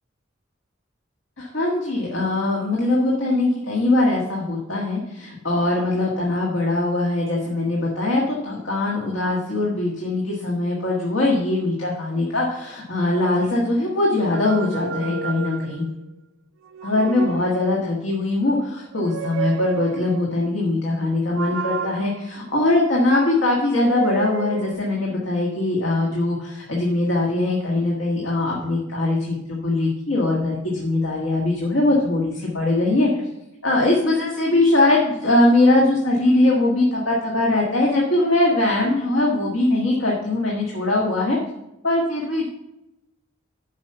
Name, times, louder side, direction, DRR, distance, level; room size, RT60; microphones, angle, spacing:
voice 1, 1.4-15.9 16.8-33.1 33.6-41.4 41.8-42.5, left 2 dB, 85° left, -3 dB, 1.6 m, -21 dB
sound 1, 14.2-16.0 16.6-18.0 18.9-20.3 21.4-23.2 23.8-24.7, right 7 dB, 85° right, 0.4 m, -31 dB
7.3 x 5.4 x 6.9 m, 0.90 s
head